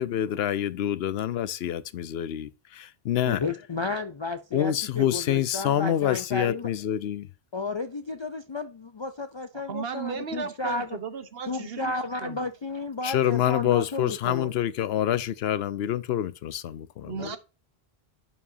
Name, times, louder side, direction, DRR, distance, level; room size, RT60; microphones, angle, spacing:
voice 1, 0.0-3.4 4.5-7.3 13.0-17.1, left 11 dB, 75° left, 0.8 m, -27 dB
voice 2, 3.3-6.7 7.5-11.0 11.5-14.5 17.2-17.4, left 3 dB, 45° left, 0.3 m, -32 dB
voice 3, 9.7-12.4 17.0-17.4, right 6 dB, 70° right, 1.1 m, -35 dB
11.0 x 4.9 x 2.7 m
omnidirectional pair, 1.1 m